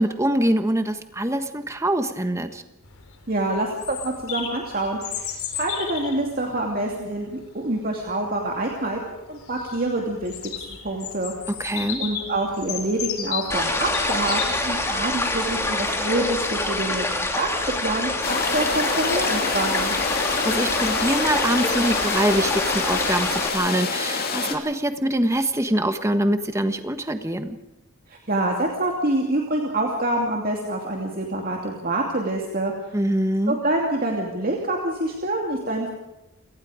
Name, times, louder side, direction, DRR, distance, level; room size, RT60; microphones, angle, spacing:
voice 1, 0.0-2.6 11.6-12.0 20.4-27.6 32.9-33.6, right 1 dB, 15° right, 8 dB, 1.3 m, -24 dB
Bird vocalization bird call bird song, 2.8-15.6, left 8 dB, 85° left, 4.0 m, -35 dB
voice 2, 3.3-11.3 12.0-17.1 17.3-17.5 17.8-20.0 28.1-32.7 33.5-35.9, right 1 dB, 45° right, 0 dB, 2.6 m, -26 dB
sound 1, 13.5-23.5, left 2 dB, 10° left, 2.5 m, -26 dB
sound 2, 18.2-24.5, left 4 dB, 45° left, 2.5 m, -26 dB
29.5 x 18.5 x 5.0 m, 0.95 s
head